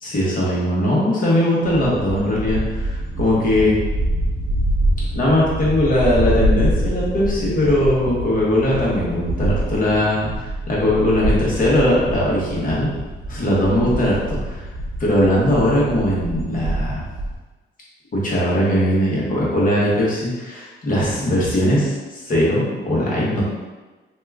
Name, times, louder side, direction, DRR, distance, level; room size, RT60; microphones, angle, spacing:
voice 1, 0.0-3.8 5.1-12.9 13.3-14.6 15.0-17.0 18.2-23.4, left 1 dB, 45° left, -6 dB, 1.2 m, -19 dB
sound 1, 1.6-17.4, right 1 dB, 50° right, 0.7 m, -25 dB
2.8 x 2.3 x 3.5 m, 1.3 s
cardioid pair, 90°, 20 cm